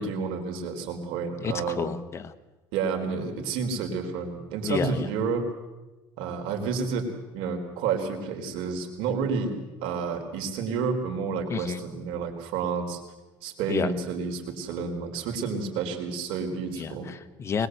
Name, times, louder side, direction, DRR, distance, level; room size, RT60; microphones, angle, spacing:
voice 1, 0.0-2.0 2.7-5.5 6.2-9.5 9.8-13.0 13.4-17.1, right 5 dB, 80° right, 5 dB, 4.1 m, -30 dB
voice 2, 1.4-2.3 4.7-5.1 11.5-11.8 13.7-13.9 16.7-17.7, left 6 dB, 30° left, 10 dB, 1.1 m, -30 dB
21.5 x 20.5 x 8.0 m, 1.1 s
cardioid pair, 135°, 9 cm